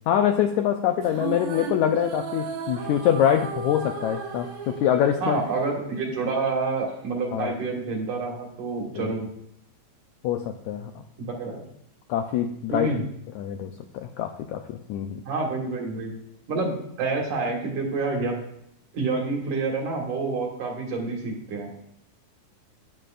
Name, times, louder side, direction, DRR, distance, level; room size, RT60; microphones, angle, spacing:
voice 1, 0.1-5.4 7.3-7.5 8.9-9.1 10.2-10.9 12.1-12.9 13.3-15.2, left 10 dB, 85° left, 5 dB, 1.7 m, -24 dB
sound 1, 1.0-6.5, right 6 dB, 85° right, 3.0 m, -35 dB
voice 2, 5.2-9.3 11.2-11.6 12.7-13.0 15.3-16.1 16.5-18.4 18.9-21.7, right 3 dB, 65° right, 1 dB, 3.1 m, -28 dB
12.0 x 10.0 x 2.5 m, 0.74 s
omnidirectional pair, 3.9 m